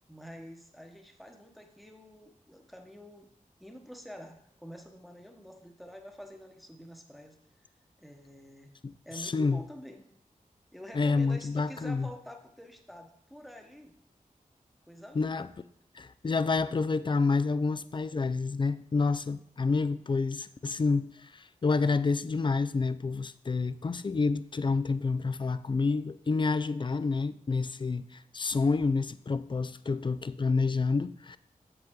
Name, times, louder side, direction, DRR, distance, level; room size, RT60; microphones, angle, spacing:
voice 1, 0.1-3.3 3.6-7.4 8.0-8.7 9.0-10.0 10.7-13.9 14.9-15.5, equal, ahead, 1.0 m, -47 dB
voice 2, 8.8-9.6 10.9-12.1 15.1-15.5 15.9-31.4, left 4 dB, 35° left, 0.4 m, -29 dB
7.8 x 7.2 x 3.7 m
wide cardioid pair, 90°, 14 cm